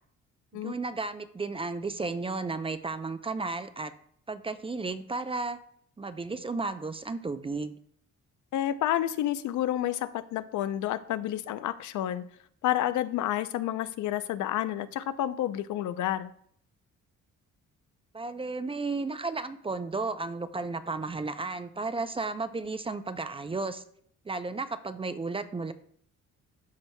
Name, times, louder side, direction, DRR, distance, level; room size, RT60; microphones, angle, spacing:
voice 1, 0.5-3.9 4.3-5.6 6.0-7.7 18.1-23.8 24.3-25.7, right 3 dB, 20° right, 11 dB, 0.5 m, -33 dB
voice 2, 8.5-12.3 12.6-16.3, left 12 dB, 75° left, 13 dB, 0.5 m, -30 dB
13.0 x 4.5 x 2.2 m, 0.63 s
cardioid pair, 90°, 30 cm